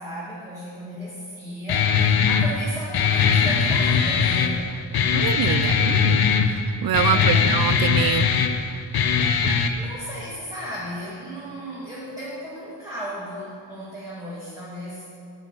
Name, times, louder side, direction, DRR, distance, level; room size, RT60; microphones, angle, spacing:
voice 1, 0.0-4.6 7.1-7.5 9.8-15.1, equal, 5° right, -8 dB, 1.9 m, -35 dB
Guitar, 1.7-9.7, left 6 dB, 55° left, 0.8 m, -20 dB
voice 2, 5.1-6.3 6.8-8.3, right 10 dB, 55° right, 13 dB, 0.5 m, -25 dB
9.8 x 6.0 x 7.8 m, 2.7 s
wide cardioid pair, 135°, 44 cm